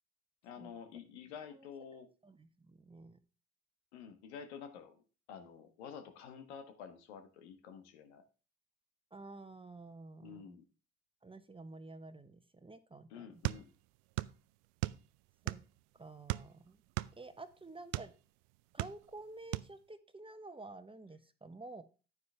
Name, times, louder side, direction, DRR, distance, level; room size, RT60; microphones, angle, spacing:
voice 1, 0.4-2.1 3.9-8.2 10.2-10.6 13.1-13.7, left 7 dB, 80° left, 8 dB, 1.4 m, -50 dB
voice 2, 2.2-3.2 9.1-10.6 11.2-13.6 15.4-15.6 16.0-16.8 17.2-18.1 18.7-21.8, right 2 dB, 15° right, 10 dB, 1.2 m, -51 dB
sound 1, 13.4-14.4 14.6-15.8 16.3-18.1 18.6-19.2 19.5-19.7, right 21 dB, 70° right, 0.5 m, -37 dB
9.6 x 9.6 x 3.4 m, 0.33 s
hypercardioid pair, 50°, 33 cm